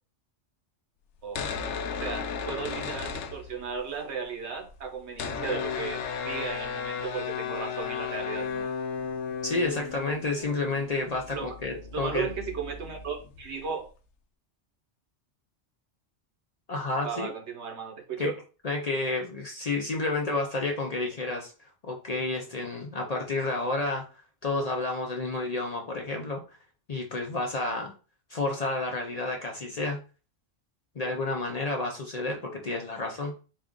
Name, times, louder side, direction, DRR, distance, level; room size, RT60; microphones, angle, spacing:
sound 1, 1.2-3.9 4.2-4.3 4.5-13.9, left 6 dB, 80° left, 0.9 m, -35 dB
voice 1, 2.0-8.7 11.3-11.5 11.9-13.9 17.0-18.4, right 6 dB, 75° right, 3 dB, 1.2 m, -35 dB
voice 2, 9.4-12.3 16.7-17.3 18.2-18.3 18.6-21.5 21.8-24.0 24.4-26.4 26.9-27.9 28.3-30.0 31.0-33.3, left 2 dB, 45° left, 1 dB, 0.6 m, -30 dB
4.2 x 2.4 x 3.7 m, 0.35 s
omnidirectional pair, 1.2 m